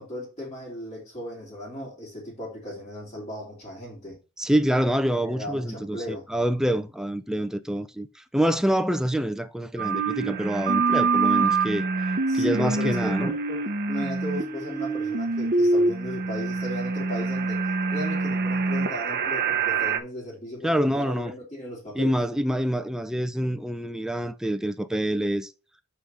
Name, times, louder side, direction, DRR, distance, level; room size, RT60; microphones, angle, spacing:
voice 1, 0.0-4.2 5.2-6.3 12.3-13.6 13.9-22.2, left 1 dB, 35° left, 3.3 m, -36 dB
voice 2, 4.4-6.0 6.3-8.1 8.3-11.9 12.3-13.3 20.6-21.3 22.0-25.5, equal, 5° right, 0.5 m, -26 dB
sound 1, 9.8-20.0, right 4 dB, 50° right, 0.9 m, -25 dB
5.7 x 5.0 x 5.5 m
head